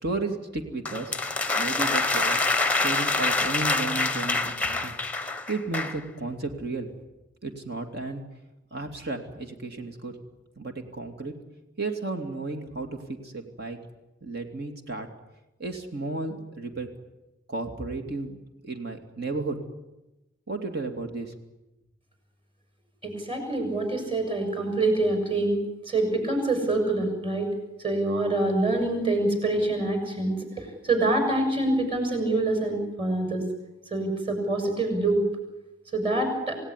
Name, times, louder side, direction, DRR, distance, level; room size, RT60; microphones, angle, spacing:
voice 1, 0.0-1.2 1.5-2.4 2.7-5.0 5.5-6.9 7.4-8.2 8.7-10.2 10.6-11.3 11.8-13.8 14.2-15.1 15.6-16.9 17.5-19.7 20.5-21.3, right 3 dB, 55° right, 5 dB, 2.7 m, -33 dB
sound 1, 0.9-6.0, left 3 dB, 5° left, 1.0 m, -26 dB
voice 2, 23.0-27.5 27.8-33.4 33.9-35.2 35.9-36.6, right 2 dB, 25° right, 5 dB, 6.6 m, -26 dB
28.0 x 17.5 x 9.9 m, 0.99 s
head